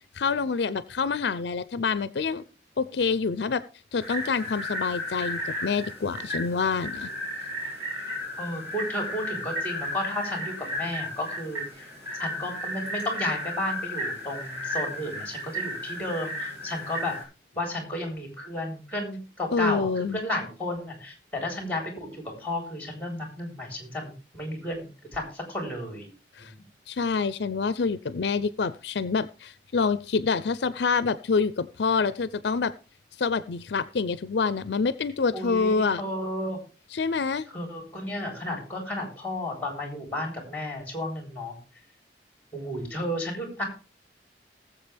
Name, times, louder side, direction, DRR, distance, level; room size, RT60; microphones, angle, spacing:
voice 1, 0.1-2.4 2.8-3.6 3.9-7.1 19.5-20.2 26.4-26.5 26.9-32.7 33.2-36.0 36.9-37.4, left 5 dB, 65° left, 15 dB, 0.5 m, -27 dB
sound 1, 4.0-17.2, left 1 dB, 15° right, 7.3 m, -34 dB
voice 2, 8.4-11.9 12.2-17.2 17.6-26.1 26.4-26.5 35.3-36.6 37.5-41.6 42.5-43.6, left 1 dB, 10° left, 2 dB, 3.8 m, -33 dB
19.5 x 7.4 x 3.4 m, 0.34 s
head